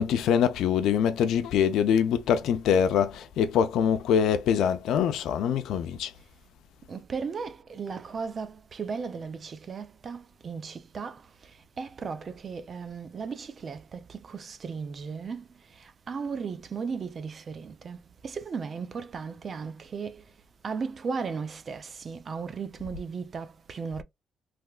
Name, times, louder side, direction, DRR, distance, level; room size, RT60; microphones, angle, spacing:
voice 1, 0.0-6.1, left 8 dB, 80° left, 0.5 m, -24 dB
voice 2, 6.9-11.2 11.8-15.5 15.8-18.0 18.2-20.2 20.6-24.0, right 5 dB, 45° right, 0.5 m, -36 dB
3.4 x 2.8 x 2.3 m
cardioid pair, 90°, 0 cm